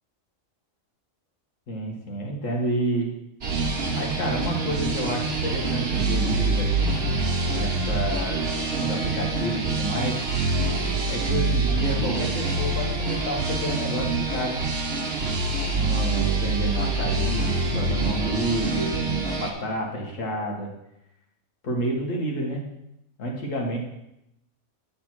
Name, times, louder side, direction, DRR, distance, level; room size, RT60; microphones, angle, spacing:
voice 1, 1.7-3.1 3.9-7.0 7.5-8.5 8.8-10.2 11.1-14.6 15.7-20.7 21.6-22.6 23.2-23.8, right 1 dB, 65° left, -1 dB, 1.9 m, -29 dB
sound 1, 3.4-19.5, right 3 dB, 50° right, 1.3 m, -25 dB
9.2 x 4.2 x 6.0 m, 0.84 s
omnidirectional pair, 1.4 m